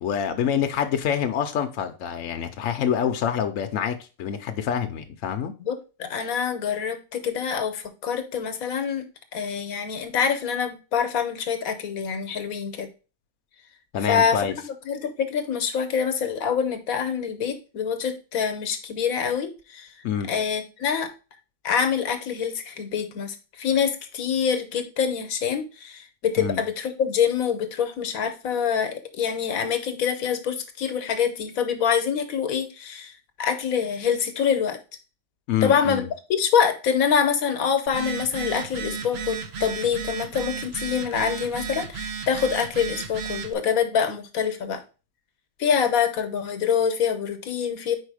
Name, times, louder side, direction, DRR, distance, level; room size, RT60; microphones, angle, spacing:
voice 1, 0.0-5.5 13.9-14.5 20.0-20.3 26.4-26.6 35.5-36.1, left 8 dB, 70° left, 1.0 m, -26 dB
voice 2, 5.6-9.0 9.3-12.9 14.0-19.9 20.3-21.1 21.6-33.1 33.4-34.8 35.6-44.8 45.6-48.0, left 7 dB, 85° left, 1.3 m, -25 dB
Telephone, 37.9-43.5, right 6 dB, 55° right, 0.9 m, -33 dB
4.8 x 4.5 x 4.8 m
omnidirectional pair, 1.5 m